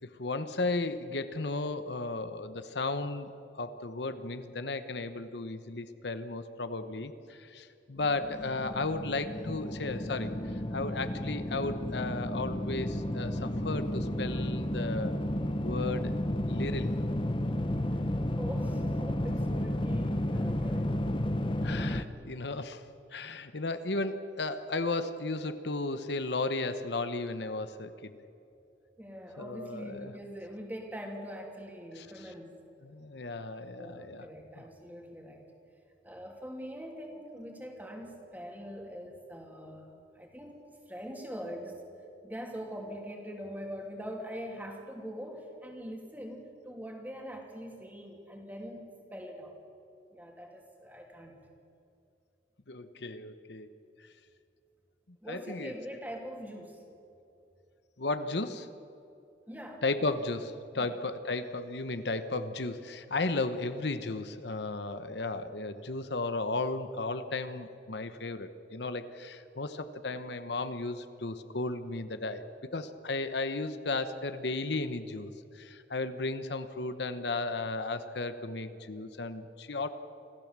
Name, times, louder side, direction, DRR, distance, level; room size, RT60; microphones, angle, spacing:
voice 1, 0.0-15.2 15.6-16.1 16.5-17.0 21.6-22.8 23.1-28.1 29.4-30.1 31.9-32.3 32.8-34.2 52.7-53.7 54.0-54.1 55.3-55.7 58.0-58.7 59.8-72.5 72.7-79.9, left 3 dB, 70° left, 10 dB, 1.0 m, -35 dB
sound 1, 8.0-22.0, left 1 dB, 30° left, 0.9 m, -32 dB
voice 2, 18.3-20.9 29.0-32.5 33.8-35.4 36.0-40.6 40.9-41.8 42.2-49.5 50.1-51.4 55.2-56.8 59.5-59.8 60.7-61.0, equal, 10° right, 1 dB, 2.8 m, -43 dB
26.0 x 15.5 x 7.5 m, 2.7 s
head